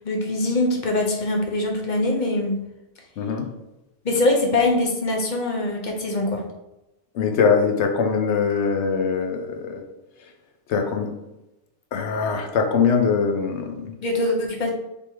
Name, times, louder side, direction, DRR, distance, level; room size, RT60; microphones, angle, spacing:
voice 1, 0.0-2.6 4.0-6.4 14.0-14.7, left 2 dB, 45° left, 1 dB, 0.8 m, -23 dB
voice 2, 3.2-3.5 7.1-9.8 10.7-11.1 11.9-13.8, left 5 dB, 75° left, 3 dB, 1.0 m, -22 dB
3.5 x 2.9 x 4.5 m, 0.96 s
omnidirectional pair, 1.2 m